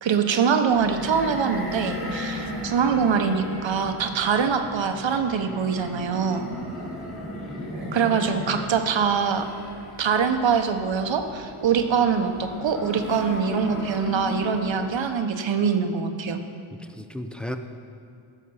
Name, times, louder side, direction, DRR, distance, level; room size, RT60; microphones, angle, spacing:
voice 1, 0.0-6.5 7.9-9.5 10.0-16.4, right 6 dB, 65° right, 6 dB, 1.0 m, -23 dB
sound 1, 0.7-15.2, left 1 dB, 25° left, 2.4 m, -36 dB
voice 2, 6.6-7.3 16.7-17.6, left 1 dB, ahead, 6 dB, 0.5 m, -36 dB
15.0 x 6.4 x 5.5 m, 2.3 s
wide cardioid pair, 105°, 50 cm